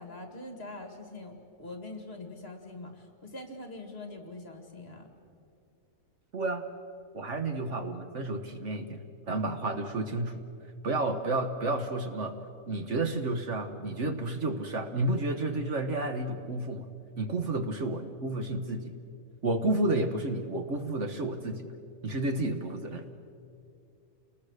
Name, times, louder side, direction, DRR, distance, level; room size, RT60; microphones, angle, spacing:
voice 1, 0.0-5.1, left 2 dB, 40° left, 5 dB, 2.5 m, -43 dB
voice 2, 6.3-6.7 7.1-10.4 10.8-12.3 12.7-16.9 17.2-18.9 19.4-21.7 22.0-23.1, right 2 dB, 55° right, 7 dB, 1.4 m, -31 dB
28.5 x 20.0 x 6.6 m, 2.5 s
omnidirectional pair, 1.6 m